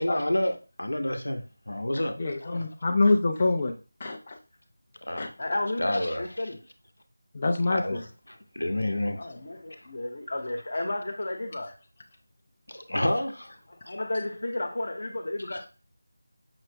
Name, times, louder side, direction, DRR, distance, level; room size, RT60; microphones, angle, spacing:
voice 1, 0.0-2.2 5.0-5.3 5.8-6.2 7.7-9.2 9.7-9.9 12.7-13.6 15.5-15.6, left 1 dB, 90° left, 0.8 m, -29 dB
voice 2, 2.2-3.7 4.0-4.4 5.2-5.3 7.3-8.0, left 2 dB, 30° left, 0.4 m, -25 dB
voice 3, 5.4-6.6 9.2-11.7 13.8-15.7, left 2 dB, 55° left, 0.9 m, -33 dB
5.7 x 2.1 x 3.3 m
figure-of-eight pair, 170°, 0 cm